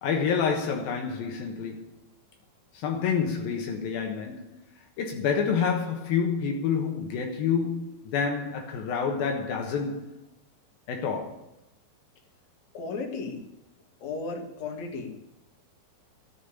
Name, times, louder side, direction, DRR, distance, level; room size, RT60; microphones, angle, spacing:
voice 1, 0.0-2.0 2.7-4.5 5.0-10.1 10.9-11.5, left 6 dB, 75° left, 3.1 m, -28 dB
voice 2, 12.7-13.4 14.0-15.2, left 4 dB, 50° left, 3.2 m, -34 dB
14.0 x 7.4 x 8.5 m
omnidirectional pair, 4.3 m